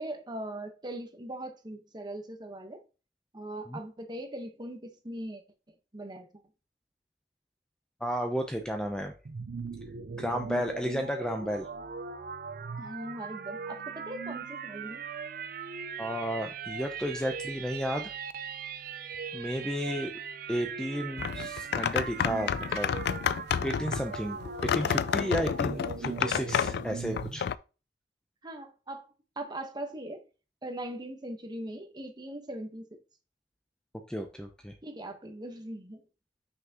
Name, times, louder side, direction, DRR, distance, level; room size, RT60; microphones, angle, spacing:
voice 1, 0.0-2.8 3.3-5.4 5.9-6.3 12.8-15.0 28.4-29.1 29.4-30.2 30.6-33.0 34.8-36.0, right 1 dB, 25° right, 1.1 m, -40 dB
voice 2, 8.0-9.1 10.2-11.7 16.0-18.1 19.3-20.1 20.5-22.9 23.6-27.5 34.1-34.7, equal, 5° left, 0.5 m, -33 dB
sound 1, 9.2-27.4, right 6 dB, 55° right, 0.5 m, -40 dB
sound 2, 21.2-27.5, left 8 dB, 65° left, 0.3 m, -30 dB
5.9 x 5.7 x 2.9 m
head